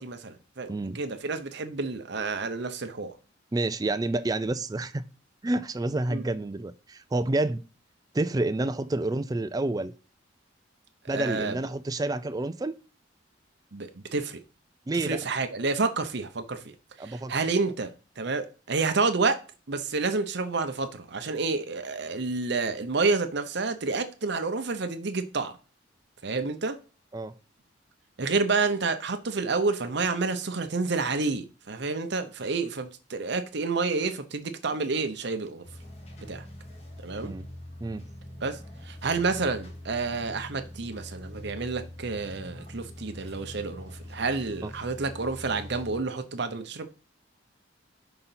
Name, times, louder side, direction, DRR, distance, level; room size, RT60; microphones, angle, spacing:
voice 1, 0.0-3.1 6.1-6.2 11.1-11.6 13.7-14.4 15.0-16.7 17.0-17.9 18.2-19.4 19.7-25.6 26.2-26.8 28.2-35.6 36.3-36.4 37.0-37.3 38.4-46.9, right 4 dB, 60° right, 0.8 m, -29 dB
voice 2, 0.7-1.0 3.5-5.1 5.4-7.6 8.1-9.9 11.1-12.7 14.9-15.2 17.0-17.3 27.1-27.3 37.2-37.5 37.8-38.1 44.6-44.7, right 2 dB, 20° right, 0.4 m, -29 dB
sound 1, 35.6-46.0, left 1 dB, 35° left, 1.5 m, -43 dB
5.7 x 4.0 x 5.7 m
head